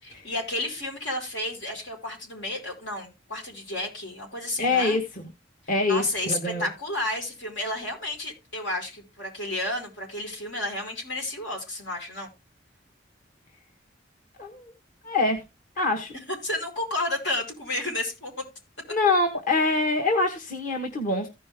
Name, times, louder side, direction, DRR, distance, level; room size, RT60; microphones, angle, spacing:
voice 1, 0.0-5.0 5.9-12.3 16.3-18.4, left 1 dB, 90° left, 4.7 m, -31 dB
voice 2, 4.6-5.0 5.7-6.7 14.4-14.7 15.0-15.4 15.8-16.1 18.9-21.3, left 2 dB, 45° left, 1.2 m, -24 dB
15.0 x 5.3 x 3.5 m
head